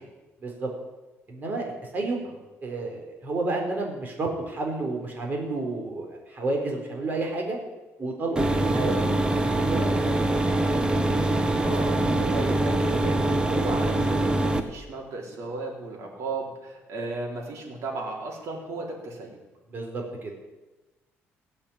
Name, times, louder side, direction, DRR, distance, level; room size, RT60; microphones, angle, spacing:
voice 1, 1.3-2.3 2.6-7.6 8.0-9.0 9.6-10.2 19.7-20.3, right 2 dB, 35° right, 1 dB, 4.3 m, -30 dB
sound 1, 8.4-14.6, right 1 dB, 20° right, 1.3 m, -24 dB
voice 2, 11.6-19.4, right 3 dB, 70° right, -1 dB, 4.3 m, -35 dB
17.5 x 8.5 x 8.8 m, 1.1 s
cardioid pair, 130°, 5 cm